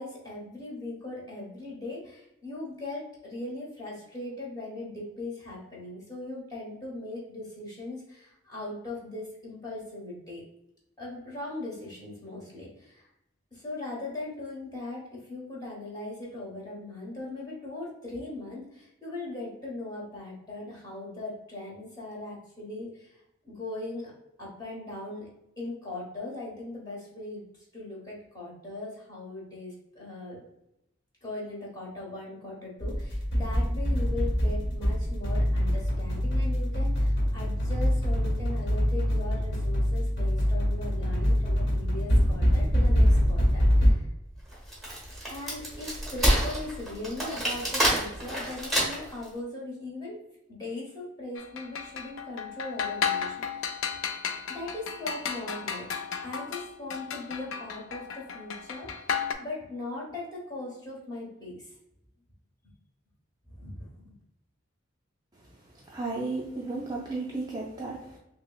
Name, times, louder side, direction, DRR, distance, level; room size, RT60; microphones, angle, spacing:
voice 1, 0.0-10.4 11.0-13.1 13.5-23.2 23.4-24.1 24.4-25.3 25.6-27.4 27.7-30.5 31.2-44.0 45.3-50.2 50.5-53.8 54.5-55.9 56.2-61.7 63.5-64.1, left 2 dB, 20° left, -4 dB, 1.1 m, -39 dB
sound 1, 32.8-43.9, equal, 60° left, 1.0 m, -24 dB
Wood, 44.5-49.2, equal, ahead, 1.2 m, -27 dB
sound 2, 51.4-59.3, left 6 dB, 80° left, 0.4 m, -34 dB
voice 2, 65.9-68.2, right 3 dB, 20° right, -3 dB, 0.4 m, -34 dB
5.9 x 2.0 x 2.4 m, 0.84 s
head